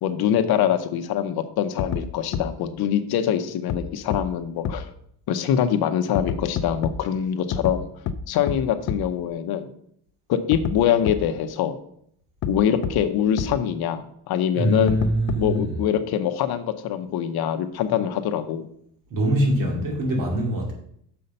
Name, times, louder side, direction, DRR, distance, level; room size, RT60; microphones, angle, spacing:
voice 1, 0.0-4.9 5.3-7.9 8.3-9.7 10.3-11.8 12.4-15.0 15.4-18.7, left 9 dB, 55° left, 8 dB, 0.8 m, -24 dB
sound 1, 1.8-2.0 2.3-2.4 3.7-3.8 4.1-4.2 4.6-4.7 6.1-6.9 7.5-7.7 8.1-8.2 8.5-8.6 8.9-9.0 10.5-10.7 11.1-11.2 12.4-12.5 12.8-12.9 13.4-13.5 14.9-15.6, left 7 dB, 40° left, 0.4 m, -26 dB
voice 2, 14.5-15.7 19.1-20.7, right 1 dB, 45° right, 0 dB, 2.4 m, -23 dB
6.6 x 5.6 x 5.4 m, 0.70 s
cardioid pair, 160°, 44 cm